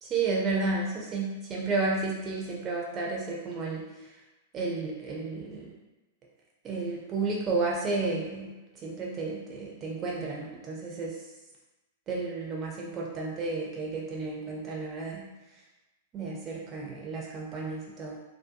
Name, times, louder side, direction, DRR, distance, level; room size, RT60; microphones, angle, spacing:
voice 1, 0.0-3.8 4.5-5.7 6.6-8.5 8.8-11.2 12.1-15.2 16.1-18.2, right 3 dB, 30° right, -2 dB, 0.5 m, -32 dB
2.6 x 2.1 x 2.5 m, 1.1 s
figure-of-eight pair, 95°, 0 cm